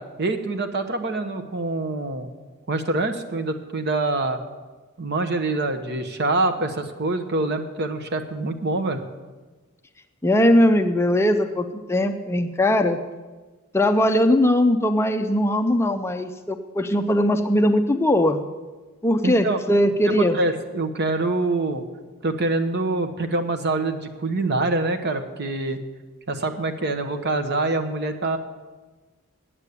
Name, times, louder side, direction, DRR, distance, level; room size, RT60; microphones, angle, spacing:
voice 1, 0.0-2.3 2.7-4.4 5.0-9.0 19.2-19.6 20.1-21.8 22.2-25.8 26.3-28.4, right 2 dB, 50° right, 8 dB, 1.0 m, -25 dB
voice 2, 10.2-13.0 13.7-18.4 19.0-20.4, left 1 dB, 10° left, 6 dB, 0.4 m, -20 dB
9.0 x 8.4 x 8.3 m, 1.3 s
head